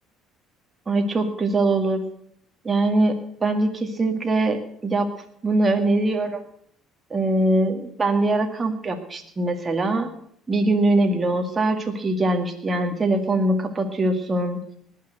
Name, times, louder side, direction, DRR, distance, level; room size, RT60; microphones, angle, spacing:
voice 1, 0.9-2.0 2.6-3.1 3.4-5.1 5.4-6.4 7.1-10.1 10.5-14.6, right 2 dB, 25° right, 4 dB, 2.0 m, -22 dB
19.0 x 6.6 x 7.9 m, 0.65 s
supercardioid pair, 80°, 0 cm